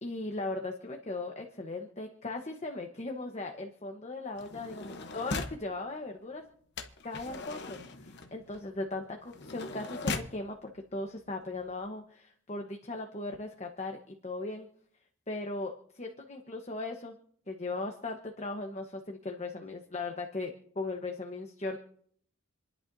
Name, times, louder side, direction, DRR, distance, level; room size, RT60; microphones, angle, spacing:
voice 1, 0.0-6.5 7.0-7.8 8.0-14.7 15.3-17.2 17.5-21.8, left 2 dB, 30° left, 3 dB, 1.1 m, -38 dB
sound 1, 4.4-5.7 6.8-10.4 11.2-11.3 11.6-11.9, left 3 dB, 55° left, 1.0 m, -39 dB
29.0 x 11.0 x 2.7 m, 0.63 s
head